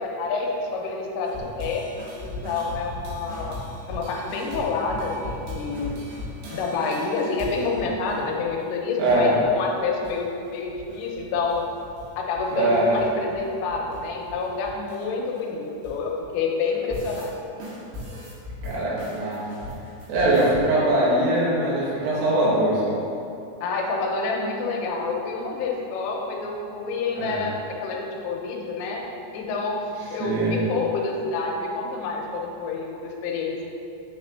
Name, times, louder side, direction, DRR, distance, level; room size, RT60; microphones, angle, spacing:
voice 1, 0.0-5.9 6.5-11.7 12.2-17.3 23.6-33.6, left 4 dB, 90° left, 0 dB, 3.2 m, -28 dB
sound 1, 1.2-8.2 8.5-8.6 8.8-9.5 9.8-10.2 10.4-12.1 12.3-16.3 16.7-17.3 17.6-20.6, left 1 dB, 65° right, 3.0 m, -38 dB
voice 2, 9.0-9.4 12.5-12.9 18.6-19.4 20.1-23.0 27.1-27.4 30.2-30.6, right 1 dB, 90° right, -7 dB, 3.9 m, -22 dB
9.2 x 4.3 x 2.6 m, 2.7 s
omnidirectional pair, 5.7 m